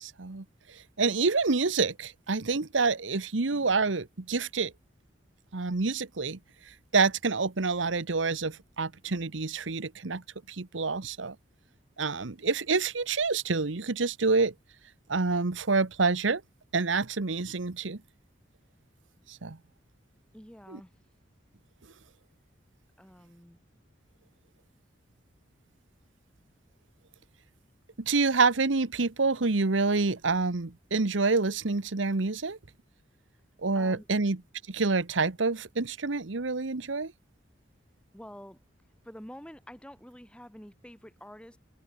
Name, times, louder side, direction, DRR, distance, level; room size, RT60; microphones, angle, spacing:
voice 1, 0.0-4.7 5.5-6.4 6.7-11.3 12.0-14.5 15.1-16.4 16.7-18.0 19.3-19.6 20.7-20.8 28.0-32.6 33.6-34.4 34.7-37.1, right 4 dB, 90° right, 1.1 m, -27 dB
voice 2, 20.3-20.9 23.0-23.6 33.7-34.1 38.1-38.6 39.0-41.6, equal, 5° left, 2.8 m, -47 dB
head